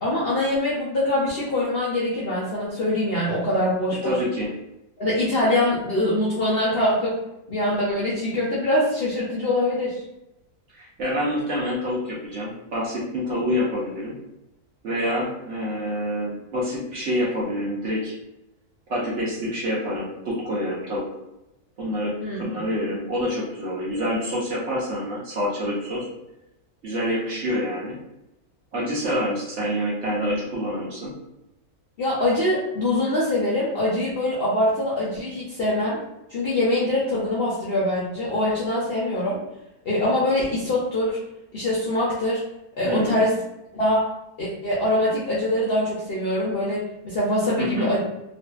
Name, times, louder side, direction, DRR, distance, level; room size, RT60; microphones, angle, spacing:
voice 1, 0.0-4.2 5.0-7.2 7.5-10.0 22.2-22.4 32.0-36.0 36.3-39.4 39.8-41.2 41.5-42.4 42.8-43.3 43.7-44.1 44.4-48.0, left 1 dB, 65° left, -7 dB, 0.6 m, -23 dB
voice 2, 4.0-4.5 10.7-14.2 14.8-18.2 18.9-21.1 21.8-26.1 26.8-28.0 28.7-31.2 42.8-43.3 47.6-47.9, equal, 65° right, -5 dB, 0.8 m, -27 dB
2.5 x 2.5 x 2.2 m, 0.91 s
omnidirectional pair, 1.6 m